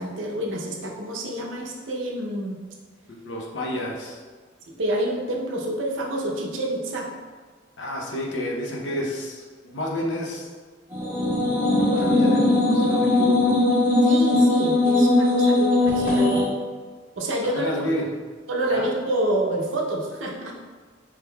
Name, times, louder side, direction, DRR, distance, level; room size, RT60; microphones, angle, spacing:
voice 1, 0.0-2.6 4.7-7.1 14.0-16.5 17.2-17.7 18.5-20.5, right 1 dB, 80° right, 0 dB, 0.7 m, -28 dB
voice 2, 3.2-4.2 7.8-10.5 11.8-13.6 17.6-18.1 18.7-18.9, left 1 dB, 65° left, -2 dB, 0.7 m, -30 dB
sound 1, 10.9-16.4, left 2 dB, 10° right, 1.5 m, -19 dB
4.7 x 3.6 x 2.2 m, 1.5 s
head